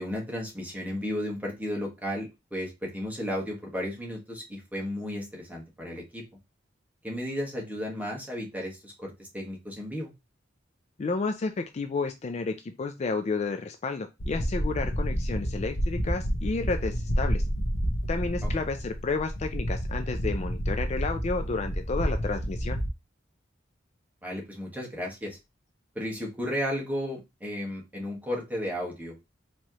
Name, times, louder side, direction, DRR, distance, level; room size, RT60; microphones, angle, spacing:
voice 1, 0.0-6.2 7.0-10.1 18.4-18.5 24.2-25.4 25.9-29.1, equal, 10° right, -2 dB, 1.4 m, -34 dB
voice 2, 11.0-17.4 18.1-22.8, left 4 dB, 35° left, 7 dB, 0.4 m, -31 dB
sound 1, 14.2-22.9, equal, 80° left, 1.0 m, -29 dB
4.5 x 3.0 x 2.9 m, 0.24 s
head